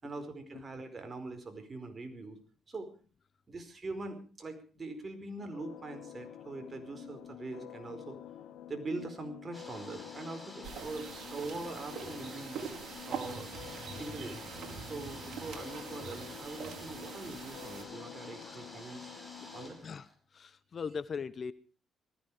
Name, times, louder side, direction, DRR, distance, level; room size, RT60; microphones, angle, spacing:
voice 1, 0.0-2.4 2.7-2.9 3.5-8.2 8.7-12.6 13.1-13.5 14.0-14.4 14.8-19.1 19.5-19.8, right 2 dB, 30° right, 7 dB, 4.8 m, -42 dB
sound 1, 5.4-19.7, left 10 dB, 90° left, 1.9 m, -49 dB
sound 2, 9.5-20.1, left 1 dB, 5° left, 5.4 m, -51 dB
sound 3, 10.6-17.8, right 7 dB, 70° right, 4.1 m, -44 dB
voice 2, 19.8-21.5, left 5 dB, 45° left, 16 dB, 0.9 m, -40 dB
19.5 x 15.0 x 5.0 m, 0.37 s
cardioid pair, 90°, 0 cm